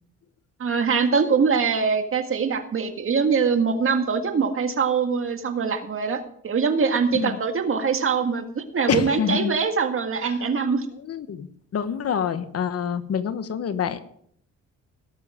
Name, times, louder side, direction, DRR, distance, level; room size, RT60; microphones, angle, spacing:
voice 1, 0.6-10.9, right 5 dB, 45° right, 6 dB, 1.8 m, -23 dB
voice 2, 8.9-9.5 11.0-11.5 11.7-14.0, left 7 dB, 50° left, 11 dB, 1.1 m, -26 dB
18.0 x 6.9 x 4.9 m, 0.66 s
cardioid pair, 90°, 30 cm